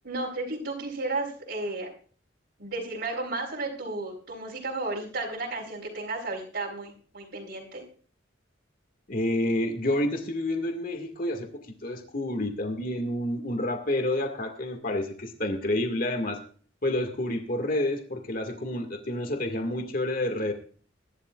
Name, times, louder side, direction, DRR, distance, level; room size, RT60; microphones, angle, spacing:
voice 1, 0.0-1.9 2.6-7.8, right 2 dB, 60° right, -5 dB, 3.8 m, -33 dB
voice 2, 9.1-11.5 11.8-16.4 16.8-20.5, left 1 dB, 50° left, 5 dB, 2.0 m, -29 dB
22.5 x 11.5 x 2.4 m, 0.42 s
head